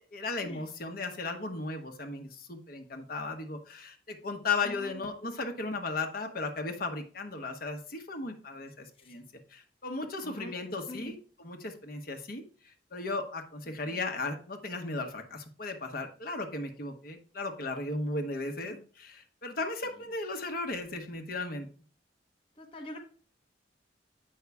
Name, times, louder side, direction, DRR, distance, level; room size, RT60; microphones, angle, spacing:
voice 1, 0.1-9.2 9.5-21.7, left 3 dB, 55° left, 5 dB, 1.2 m, -36 dB
voice 2, 4.6-5.1 9.0-9.1 10.2-10.5 10.9-11.1 18.7-18.9 22.6-23.0, left 1 dB, 30° left, 1 dB, 1.0 m, -44 dB
8.3 x 5.5 x 3.5 m, 0.42 s
head